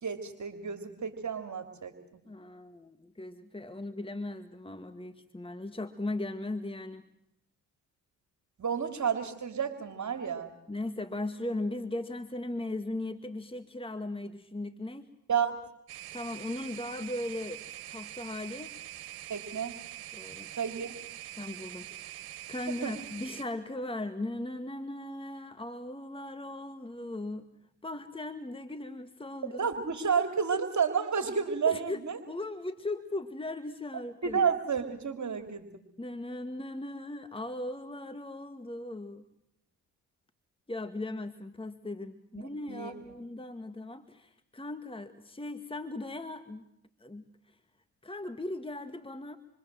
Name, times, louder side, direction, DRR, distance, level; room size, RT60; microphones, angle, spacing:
voice 1, 0.0-2.2 8.6-10.5 15.3-15.6 19.3-19.7 20.5-20.9 22.7-22.9 29.4-32.2 34.2-35.8 42.7-43.1, right 6 dB, 45° right, 7 dB, 3.3 m, -31 dB
voice 2, 2.3-7.0 10.7-15.1 16.1-17.6 17.9-18.7 20.1-20.5 21.4-27.5 27.8-29.6 31.7-34.4 36.0-39.2 40.7-46.7 47.0-47.6 48.0-49.4, left 2 dB, 15° left, 10 dB, 1.9 m, -38 dB
sound 1, 15.9-23.4, right 14 dB, 80° right, 1.8 m, -44 dB
28.0 x 24.5 x 7.8 m, 0.76 s
supercardioid pair, 55°, 38 cm